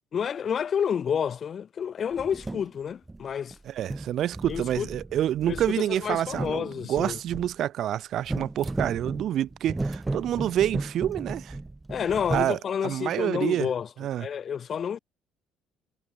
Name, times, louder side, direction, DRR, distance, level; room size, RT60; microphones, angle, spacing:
voice 1, 0.1-3.6 4.5-4.9 5.5-7.2 11.9-13.9 14.2-15.0, left 7 dB, 45° left, 1.1 m, -29 dB
sound 1, 2.1-2.7 3.1-3.6 3.8-7.5 8.2-12.5, right 2 dB, 15° right, 1.2 m, -35 dB
voice 2, 3.7-11.6 12.3-13.7 14.0-14.3, right 11 dB, 60° right, 0.7 m, -28 dB
hypercardioid pair, 55°, 0 cm